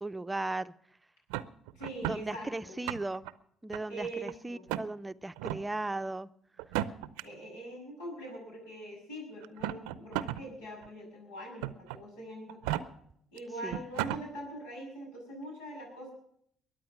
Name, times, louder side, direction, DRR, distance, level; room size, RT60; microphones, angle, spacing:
voice 1, 0.0-0.7 2.1-3.3 3.6-6.3 13.6-13.8, right 2 dB, 15° right, 14 dB, 0.6 m, -36 dB
sound 1, 1.3-2.2 2.7-3.3 3.7-4.3 4.7-4.9 5.4-5.6 6.6-7.2 8.3-8.4 9.4-10.4 10.8-10.9 11.6-12.0 12.5-12.8 13.4-13.5 13.7-14.2, right 14 dB, 85° right, 0.5 m, -34 dB
voice 2, 1.7-2.8 3.9-4.6 7.2-12.8 13.3-16.1, right 1 dB, 85° left, -1 dB, 7.4 m, -43 dB
22.5 x 8.8 x 6.1 m, 0.69 s
hypercardioid pair, 60°, 0 cm